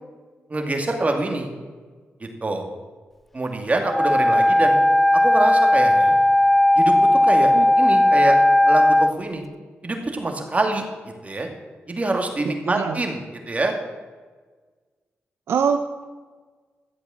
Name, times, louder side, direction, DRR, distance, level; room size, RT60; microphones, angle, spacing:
voice 1, 0.5-1.5 2.4-2.6 3.3-4.8 5.2-6.1 6.8-8.4 8.7-9.4 9.8-11.5 11.9-13.2 13.5-13.7, right 2 dB, 35° right, 3 dB, 2.5 m, -25 dB
Wind instrument woodwind instrument, 3.8-9.1, left 1 dB, 5° left, 0.4 m, -16 dB
voice 2, 12.7-13.0 15.5-16.0, right 6 dB, 80° right, 7 dB, 0.6 m, -24 dB
12.5 x 8.0 x 7.1 m, 1.4 s
cardioid pair, 65°, 4 cm